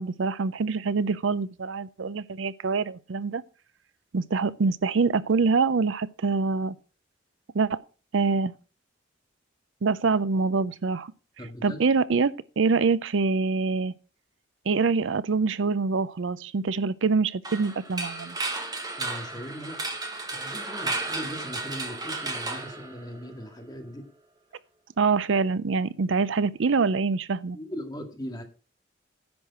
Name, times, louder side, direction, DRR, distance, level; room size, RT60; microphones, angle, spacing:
voice 1, 0.0-3.4 4.1-6.8 7.5-7.8 8.1-8.5 9.8-11.1 11.6-13.9 14.7-18.4 25.0-27.6, right 4 dB, 75° right, 0.5 m, -25 dB
voice 2, 11.4-11.8 19.0-19.8 20.2-24.1 27.5-28.4, equal, 20° left, 2.0 m, -39 dB
sound 1, 17.4-23.4, right 3 dB, 20° right, 1.3 m, -33 dB
10.5 x 6.4 x 5.9 m
head